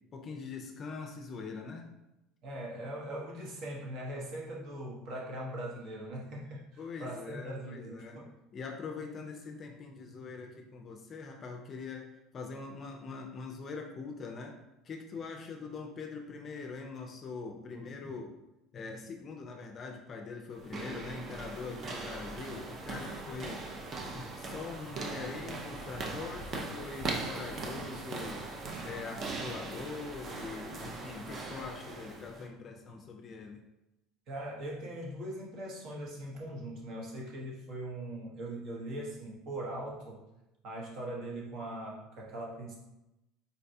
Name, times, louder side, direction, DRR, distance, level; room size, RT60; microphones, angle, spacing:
voice 1, 0.1-1.9 6.8-8.3 8.5-14.6 14.8-18.3 18.7-23.7 24.1-28.5 28.8-33.6, left 4 dB, 35° left, 3 dB, 0.4 m, -43 dB
voice 2, 2.4-8.3 21.7-21.8 34.3-40.2 40.6-42.8, right 1 dB, 55° right, -3 dB, 0.9 m, -41 dB
sound 1, 20.5-32.5, right 3 dB, 35° right, 0.5 m, -40 dB
4.0 x 2.2 x 2.7 m, 0.94 s
supercardioid pair, 110°, 0 cm